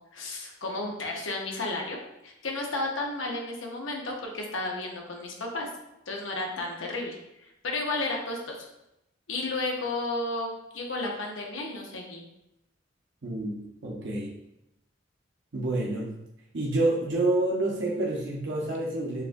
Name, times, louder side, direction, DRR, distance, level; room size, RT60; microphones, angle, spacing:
voice 1, 0.1-5.7 6.1-8.7 9.3-12.3, left 2 dB, 85° left, 0 dB, 0.9 m, -33 dB
voice 2, 13.2-14.3 15.5-16.1 16.5-19.2, right 2 dB, 65° right, -4 dB, 0.8 m, -28 dB
6.7 x 2.3 x 2.6 m, 0.85 s
head